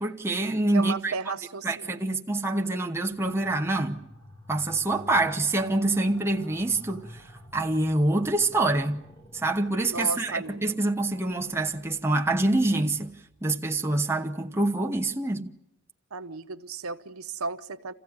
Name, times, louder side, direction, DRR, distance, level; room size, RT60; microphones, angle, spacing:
voice 1, 0.0-1.1 1.6-4.0 4.5-7.3 7.5-9.0 9.3-15.5, right 2 dB, 10° right, 0.9 m, -26 dB
voice 2, 0.7-2.0 9.9-10.7 16.1-17.9, right 4 dB, 90° right, 0.9 m, -34 dB
sound 1, 3.1-13.6, equal, 20° left, 2.0 m, -51 dB
28.0 x 15.0 x 9.6 m
head